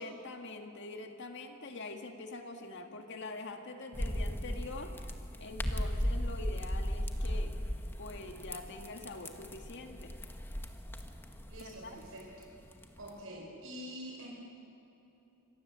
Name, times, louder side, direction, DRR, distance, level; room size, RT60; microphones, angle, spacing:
voice 1, 0.0-5.0 5.4-7.7 8.0-10.2 11.6-12.1, left 2 dB, 60° left, 4 dB, 1.9 m, -45 dB
sound 1, 3.9-13.2, equal, 10° left, 1.3 m, -37 dB
voice 2, 11.5-12.3 13.0-14.3, equal, 75° right, -2 dB, 5.1 m, -46 dB
25.5 x 18.0 x 7.6 m, 3.0 s
head